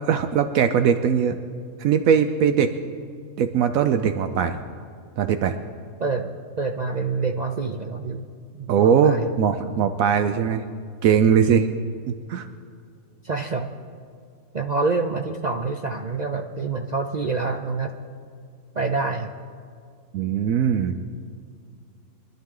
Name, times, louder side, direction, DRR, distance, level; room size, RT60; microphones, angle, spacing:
voice 1, 0.1-1.4 1.8-2.7 3.4-4.6 5.2-5.5 8.7-10.6 11.0-11.7 12.1-12.5 20.1-21.0, right 7 dB, 75° right, 8 dB, 1.0 m, -20 dB
voice 2, 6.0-8.3 8.6-9.3 13.2-13.7 14.5-18.0 18.7-19.4, right 3 dB, 55° right, 4 dB, 0.4 m, -27 dB
24.0 x 11.0 x 3.8 m, 2.3 s
omnidirectional pair, 1.5 m